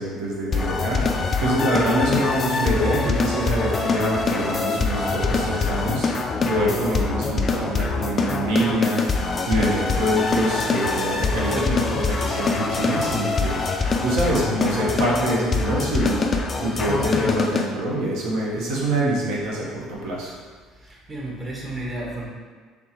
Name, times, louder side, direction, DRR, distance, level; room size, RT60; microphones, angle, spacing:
voice 1, 0.0-9.0 9.5-16.3 16.6-20.4, right 1 dB, 65° right, -4 dB, 0.8 m, -25 dB
sound 1, 0.5-17.7, left 4 dB, 35° left, 0.3 m, -24 dB
voice 2, 20.8-22.3, right 1 dB, 30° right, -4 dB, 1.0 m, -32 dB
3.3 x 3.1 x 2.8 m, 1.5 s
figure-of-eight pair, 55°, 0 cm